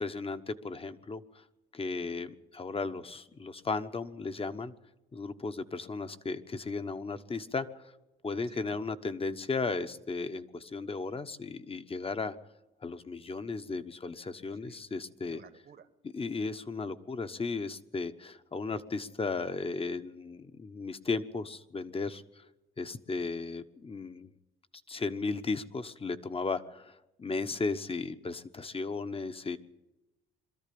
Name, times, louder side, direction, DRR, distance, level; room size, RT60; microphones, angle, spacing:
voice 1, 0.0-1.4 1.7-4.7 5.1-7.7 8.2-12.3 12.8-15.4 16.0-22.4 22.8-24.3 24.9-29.6, left 4 dB, 30° left, 10 dB, 1.2 m, -35 dB
voice 2, 8.5-8.8 14.5-14.9 15.2-15.9, right 7 dB, 50° right, 10 dB, 1.3 m, -56 dB
22.5 x 13.5 x 8.6 m, 1.0 s
cardioid pair, 90°, 20 cm